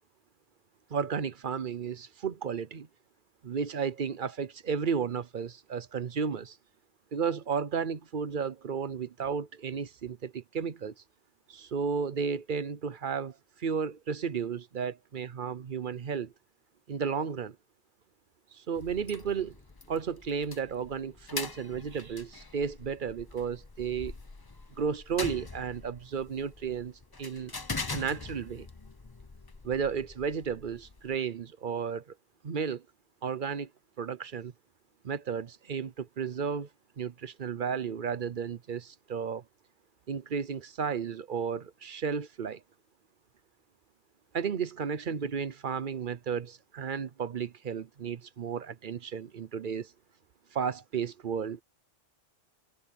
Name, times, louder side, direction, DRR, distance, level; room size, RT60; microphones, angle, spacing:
voice 1, 0.9-2.9 3.4-6.6 7.1-10.9 11.5-16.3 16.9-17.6 18.5-19.6 19.9-24.1 24.8-26.9 27.2-27.5 27.9-28.7 29.6-32.0 32.4-32.8 33.2-33.7 34.0-34.5 35.0-36.7 37.0-39.4 40.1-42.6 44.3-49.9 50.5-51.6, right 6 dB, 45° right, 0.9 m, -33 dB
sound 1, 18.7-31.2, left 3 dB, 20° left, 0.7 m, -43 dB
omnidirectional pair, 1.3 m